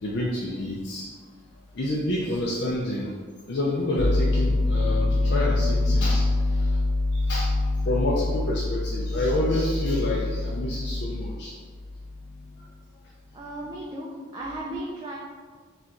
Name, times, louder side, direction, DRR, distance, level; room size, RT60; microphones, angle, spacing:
voice 1, 0.0-1.1 1.7-3.2 3.5-11.6 12.2-12.8 13.6-13.9 14.7-14.8, left 2 dB, 60° left, -5 dB, 0.5 m, -24 dB
voice 2, 13.3-15.2, right 1 dB, 20° right, -4 dB, 0.3 m, -36 dB
4.2 x 2.3 x 3.7 m, 1.5 s
head